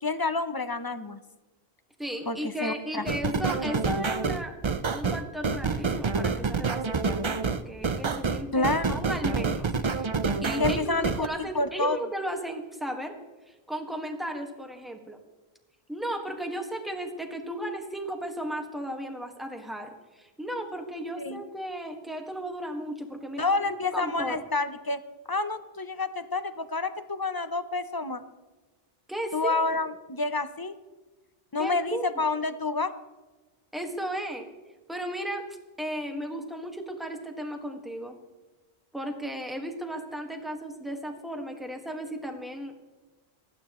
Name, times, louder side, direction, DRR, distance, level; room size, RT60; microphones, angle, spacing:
voice 1, 0.0-1.2 2.3-3.0 8.5-9.0 10.6-12.0 21.2-21.4 23.4-25.0 25.3-28.2 29.3-30.7 31.5-32.9, left 3 dB, 25° left, 11 dB, 0.6 m, -29 dB
voice 2, 2.0-4.6 4.9-10.1 10.4-13.1 13.5-15.2 15.9-23.7 23.9-24.4 29.1-29.6 31.6-32.1 33.7-34.5 34.9-38.2 38.9-43.0, equal, ahead, 3 dB, 1.6 m, -35 dB
sound 1, 3.1-11.3, right 4 dB, 35° right, 0.6 m, -27 dB
28.5 x 9.6 x 3.1 m, 1.2 s
omnidirectional pair, 1.1 m